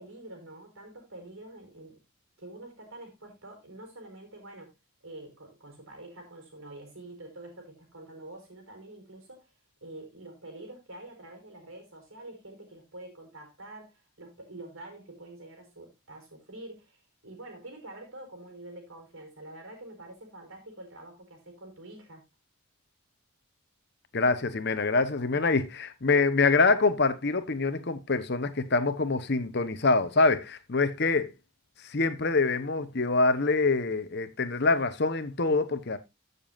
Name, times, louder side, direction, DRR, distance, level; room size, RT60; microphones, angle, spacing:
voice 1, 0.0-2.0 2.4-4.7 5.0-9.5 9.8-22.2 25.3-25.4, right 1 dB, 70° right, 4.5 m, -46 dB
voice 2, 24.1-31.3 31.9-36.0, left 3 dB, 50° left, 1.0 m, -25 dB
15.0 x 6.9 x 2.5 m
head